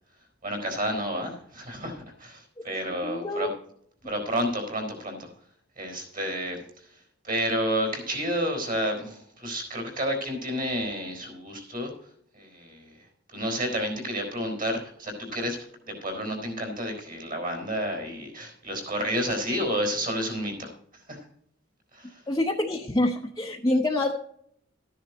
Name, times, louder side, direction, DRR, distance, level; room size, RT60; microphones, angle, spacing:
voice 1, 0.4-3.5 4.0-5.3 5.8-6.6 7.2-11.9 12.3-13.0 13.3-15.6 15.9-20.7 21.1-21.2 21.9-22.2, equal, 45° right, 4 dB, 4.2 m, -30 dB
voice 2, 3.0-3.5 22.3-24.1, left 1 dB, 20° left, 1 dB, 0.8 m, -26 dB
13.5 x 10.0 x 4.1 m, 0.66 s
head